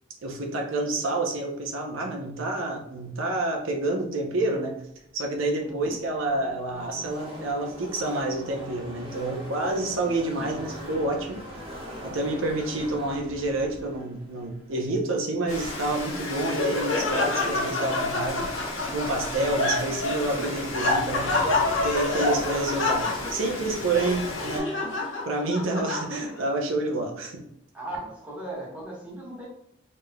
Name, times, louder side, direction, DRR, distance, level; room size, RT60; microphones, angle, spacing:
voice 1, 0.2-4.7 5.1-11.4 12.0-18.5 18.8-21.3 21.8-24.7 25.3-27.4, right 2 dB, 80° right, 1 dB, 0.7 m, -28 dB
voice 2, 5.6-6.0 22.1-22.5 27.7-29.5, right 1 dB, 5° right, -5 dB, 1.2 m, -37 dB
Car passing by / Race car auto racing, 5.6-15.9, equal, 30° right, 1.1 m, -41 dB
Rain, 15.5-24.6, left 2 dB, 90° left, 1.2 m, -35 dB
Laughter, 15.9-26.4, left 3 dB, 65° left, 0.9 m, -28 dB
4.2 x 3.2 x 2.2 m, 0.75 s
head